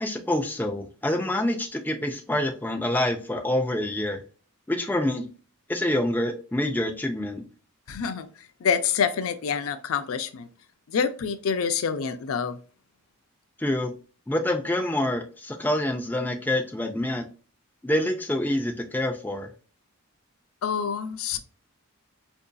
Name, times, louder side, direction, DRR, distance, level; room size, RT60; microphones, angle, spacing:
voice 1, 0.0-4.2 4.7-5.3 5.7-7.4 13.6-13.9 14.3-17.3 17.8-19.5, left 1 dB, 10° left, 0.4 m, -26 dB
voice 2, 7.9-10.5 10.9-12.6 20.6-21.4, left 6 dB, 70° left, 0.4 m, -27 dB
4.6 x 2.6 x 2.2 m
head